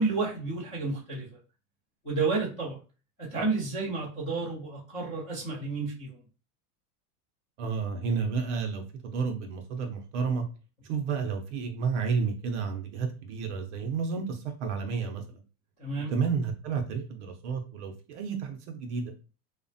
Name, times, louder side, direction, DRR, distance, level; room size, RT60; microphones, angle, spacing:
voice 1, 0.0-1.4 2.0-2.8 3.2-6.2 15.8-16.1, right 3 dB, 15° left, -7 dB, 0.4 m, -31 dB
voice 2, 7.6-10.4 10.9-15.2 16.1-19.1, right 5 dB, 45° right, 5 dB, 0.5 m, -31 dB
2.9 x 2.1 x 2.6 m, 0.34 s
supercardioid pair, 160°, 49 cm